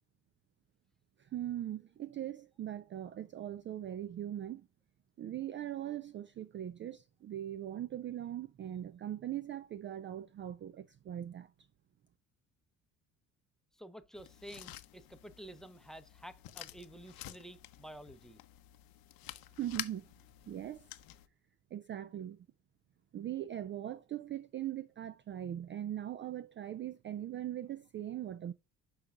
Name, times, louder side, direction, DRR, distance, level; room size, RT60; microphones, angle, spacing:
voice 1, 1.2-4.7 5.2-11.5 19.6-20.1 20.5-20.9 21.7-22.5 23.1-28.5, right 11 dB, 30° right, 0.4 m, -40 dB
voice 2, 13.7-18.4, right 1 dB, ahead, 0.7 m, -51 dB
sound 1, 14.1-21.3, left 15 dB, 65° left, 0.7 m, -49 dB
11.0 x 4.0 x 2.4 m
hypercardioid pair, 65°, 39 cm